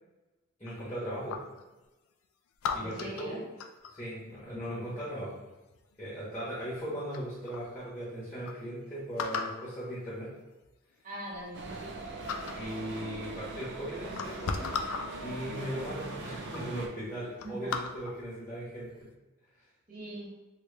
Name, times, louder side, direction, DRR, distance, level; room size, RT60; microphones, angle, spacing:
voice 1, 0.6-1.4 2.7-3.4 3.9-5.3 6.0-10.3 12.5-14.8 15.2-19.1, equal, 10° left, -10 dB, 1.1 m, -38 dB
sound 1, 0.7-1.6 2.6-4.0 5.7-6.1 6.8-6.9 7.1-7.7 8.1-8.2 8.4-8.5 9.2-9.7 10.6-10.7 11.2-12.0 12.3-12.7 13.5-13.6 14.0-15.1 15.9-16.0 16.4-16.6 17.0-18.2 18.7-19.0, left 5 dB, 80° left, 0.3 m, -37 dB
voice 2, 2.8-3.4 11.0-12.0 17.4-17.7 19.9-20.3, right 1 dB, 40° right, -5 dB, 1.1 m, -41 dB
sound 2, 11.5-16.9, right 2 dB, 55° right, 0.5 m, -41 dB
3.1 x 2.9 x 3.3 m, 1.1 s
head